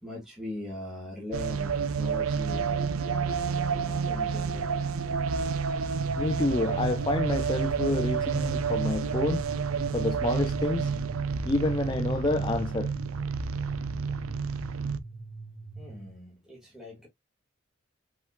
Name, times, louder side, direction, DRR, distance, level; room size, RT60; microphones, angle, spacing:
voice 1, 0.0-2.9 3.5-4.8 5.1-5.3 15.7-17.1, left 2 dB, ahead, 1.7 m, -41 dB
sound 1, 1.3-15.0, right 5 dB, 90° right, 0.6 m, -29 dB
sound 2, 5.9-16.1, right 3 dB, 50° right, 0.9 m, -42 dB
voice 2, 6.2-9.4 9.9-10.9 11.4-12.9, left 2 dB, 20° left, 0.4 m, -28 dB
5.6 x 4.3 x 2.2 m
head